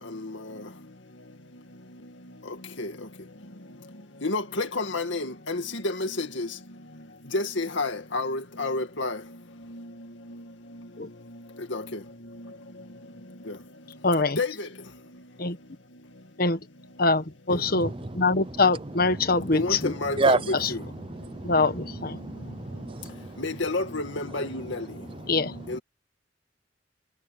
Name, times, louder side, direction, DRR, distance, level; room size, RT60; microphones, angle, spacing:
voice 1, 4.2-6.5 7.3-9.2 11.7-11.8 14.4-14.5 19.5-20.4 20.7-20.8 23.4-24.8 25.7-25.8, left 2 dB, 85° left, 2.1 m, -29 dB
voice 2, 14.0-14.4 15.4-15.6 16.4-16.6 17.0-19.9 20.6-20.7 21.4-22.2 25.3-25.5, left 3 dB, 50° left, 1.5 m, -24 dB
voice 3, 17.5-18.4 18.8-19.9 20.2-23.4 25.0-25.8, right 2 dB, 30° right, 0.7 m, -31 dB
head